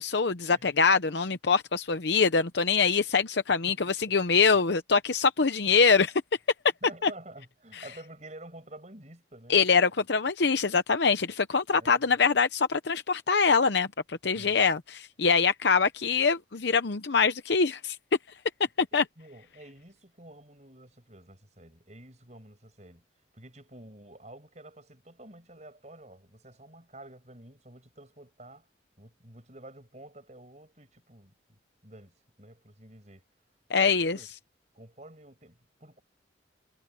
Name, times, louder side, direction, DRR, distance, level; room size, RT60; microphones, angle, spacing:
voice 1, 0.0-6.1 7.0-7.1 9.5-18.0 18.8-19.0 33.7-34.2, left 5 dB, 65° left, 0.8 m, -24 dB
voice 2, 3.5-4.2 6.8-9.7 9.9-10.0 11.7-12.2 14.3-14.6 19.2-28.7 29.0-33.2 33.8-34.3 34.7-36.0, right 1 dB, 40° right, 6.1 m, -50 dB
head